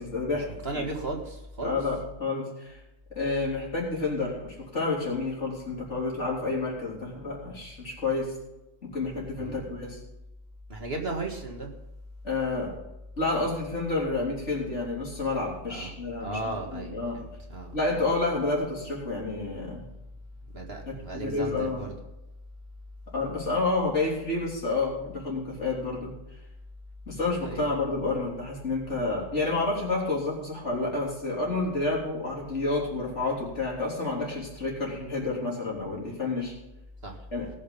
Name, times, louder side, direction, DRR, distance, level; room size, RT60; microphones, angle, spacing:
voice 1, 0.0-0.5 1.6-2.8 3.1-8.3 8.8-10.0 12.2-12.7 13.2-17.2 17.7-19.8 20.9-21.8 23.1-26.1 27.1-36.5 37.3-37.5, left 3 dB, 60° left, -3 dB, 4.1 m, -29 dB
voice 2, 0.6-1.7 9.4-9.6 10.7-11.7 15.7-15.9 16.2-17.8 20.5-22.0 27.4-27.7 37.0-37.2, right 2 dB, 50° right, 2 dB, 2.0 m, -35 dB
19.0 x 6.4 x 5.6 m, 0.97 s
omnidirectional pair, 1.3 m